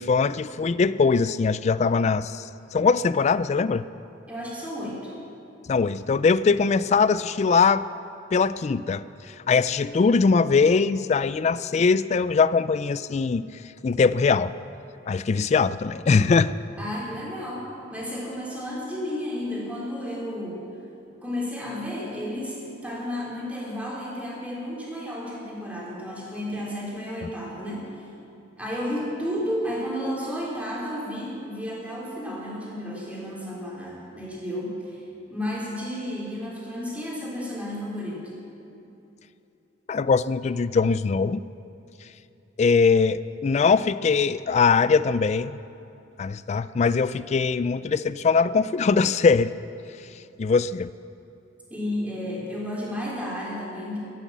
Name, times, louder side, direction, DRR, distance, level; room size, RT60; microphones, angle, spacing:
voice 1, 0.0-3.9 5.7-7.9 8.3-13.4 13.8-14.5 15.1-16.5 27.2-27.3 39.9-41.4 42.6-45.6 46.2-49.5 50.4-50.9, left 5 dB, 35° left, 16 dB, 0.3 m, -21 dB
voice 2, 4.3-5.1 16.8-20.7 21.2-28.0 28.6-35.0 35.3-38.3 51.7-54.0, equal, 10° right, -5 dB, 3.6 m, -32 dB
14.5 x 10.0 x 7.4 m, 2.8 s
head